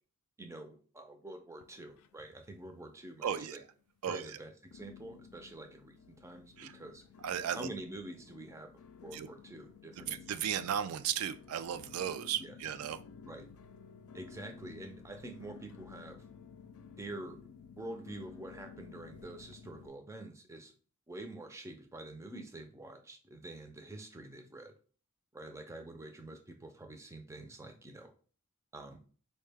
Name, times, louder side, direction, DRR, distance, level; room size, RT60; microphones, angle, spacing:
voice 1, 0.4-3.6 4.1-7.0 7.5-10.2 12.4-12.6 13.2-13.5 14.1-16.2 17.0-17.4 17.8-20.7 21.1-24.7 25.3-28.1 28.7-29.0, right 2 dB, 15° right, 6 dB, 0.4 m, -47 dB
sound 1, 1.5-2.5 2.7-3.4 3.9-4.0 4.7-19.9, left 6 dB, 75° left, 0.3 m, -54 dB
voice 2, 3.2-3.6 4.0-4.4 6.6-6.8 7.2-7.7 9.1-9.3 10.0-13.0, right 9 dB, 80° right, 11 dB, 0.3 m, -35 dB
4.5 x 2.1 x 3.3 m, 0.42 s
head